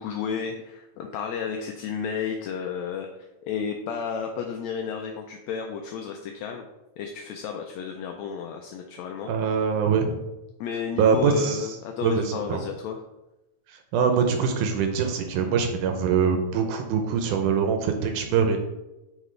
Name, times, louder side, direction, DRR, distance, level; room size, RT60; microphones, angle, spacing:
voice 1, 0.0-3.1 3.4-6.6 7.0-9.3 10.6-13.0, left 6 dB, 85° left, 3 dB, 1.5 m, -32 dB
voice 2, 9.3-10.2 11.0-11.7 12.0-12.6 13.7-18.6, right 6 dB, 80° right, 5 dB, 2.1 m, -23 dB
9.0 x 3.9 x 3.2 m, 0.98 s
omnidirectional pair, 3.7 m